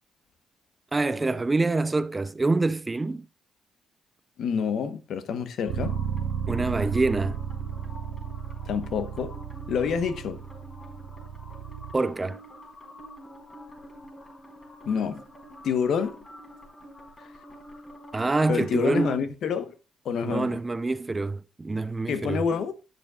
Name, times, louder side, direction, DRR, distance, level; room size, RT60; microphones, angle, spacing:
voice 1, 0.9-3.3 6.5-7.4 11.9-12.4 18.1-19.2 20.2-22.4, right 3 dB, 20° right, 0.5 m, -26 dB
voice 2, 4.4-5.9 8.7-9.3 9.7-10.4 14.8-15.2 15.6-16.2 17.2-17.3 18.5-19.7 20.0-20.6 22.1-22.7, left 6 dB, 70° left, 1.0 m, -27 dB
sound 1, 5.7-19.1, equal, 25° left, 4.4 m, -47 dB
Bass guitar, 5.7-11.9, right 7 dB, 80° right, 0.8 m, -34 dB
11.0 x 7.2 x 2.4 m
cardioid pair, 90°, 0 cm